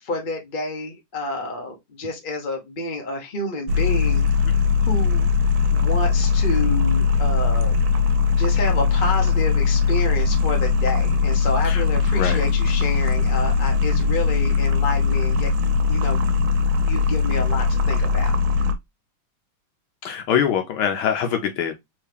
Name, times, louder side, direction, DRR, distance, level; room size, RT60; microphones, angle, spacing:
voice 1, 0.0-4.5 4.8-5.3 5.7-7.8 8.3-16.2 16.8-18.3, left 2 dB, 50° left, 0.6 m, -29 dB
sound 1, 3.7-18.7, left 5 dB, 75° right, 1.4 m, -20 dB
voice 2, 20.0-21.7, left 8 dB, 75° left, 1.4 m, -23 dB
3.5 x 3.2 x 3.3 m
omnidirectional pair, 2.4 m